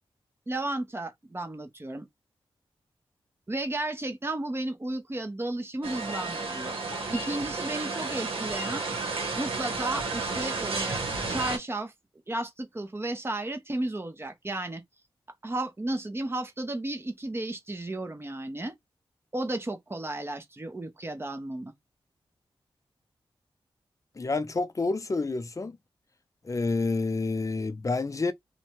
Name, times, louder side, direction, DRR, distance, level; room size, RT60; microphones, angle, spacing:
voice 1, 0.5-2.1 3.5-6.8 7.1-8.8 9.3-11.0 11.3-11.9 12.3-14.8 15.4-18.7 19.3-21.7, right 2 dB, 25° right, 0.7 m, -33 dB
sound 1, 5.8-11.6, right 3 dB, 75° right, 1.0 m, -32 dB
voice 2, 24.2-25.8 26.4-28.3, left 3 dB, 35° left, 0.4 m, -28 dB
2.6 x 2.1 x 2.9 m
cardioid pair, 60°, 10 cm